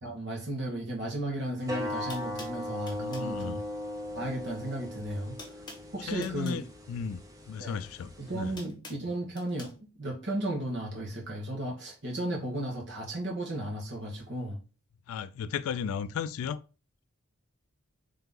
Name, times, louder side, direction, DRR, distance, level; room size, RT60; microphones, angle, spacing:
voice 1, 0.0-3.6 4.1-5.4 5.9-6.6 7.6-7.8 8.3-9.7 10.0-14.6, right 1 dB, 55° right, 1.2 m, -34 dB
sound 1, 1.6-1.7 2.1-3.3 4.5-4.8 5.1-6.6 7.8-9.7, left 2 dB, 20° left, 1.0 m, -48 dB
sound 2, 1.6-8.6, left 1 dB, 15° right, 0.5 m, -39 dB
voice 2, 3.0-3.6 6.1-8.6 15.1-16.6, left 7 dB, 80° left, 0.3 m, -35 dB
3.5 x 2.8 x 3.7 m
head